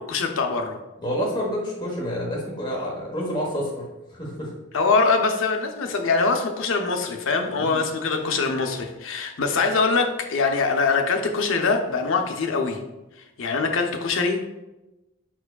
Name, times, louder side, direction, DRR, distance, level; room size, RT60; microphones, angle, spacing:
voice 1, 0.1-0.8 4.7-12.8 13.4-14.4, left 4 dB, 65° left, 4 dB, 0.5 m, -23 dB
voice 2, 1.0-3.9 4.2-4.5 7.6-7.8, equal, 20° left, -3 dB, 1.1 m, -28 dB
5.1 x 4.5 x 2.3 m, 1.0 s
head